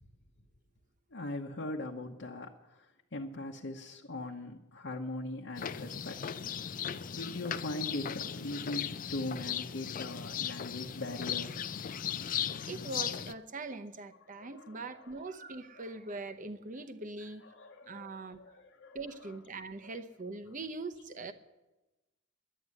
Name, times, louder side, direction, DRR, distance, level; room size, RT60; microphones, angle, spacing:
voice 1, 1.1-6.2 6.6-6.8 7.1-11.8 14.3-15.2 15.7-16.0 17.2-19.4 19.8-20.0 20.5-20.6, left 2 dB, 65° left, 1.0 m, -41 dB
sound 1, 5.6-13.3, left 8 dB, 45° left, 0.4 m, -37 dB
voice 2, 12.7-17.4 17.9-18.4 18.9-21.3, right 3 dB, 40° right, 0.8 m, -42 dB
11.0 x 9.4 x 9.7 m
head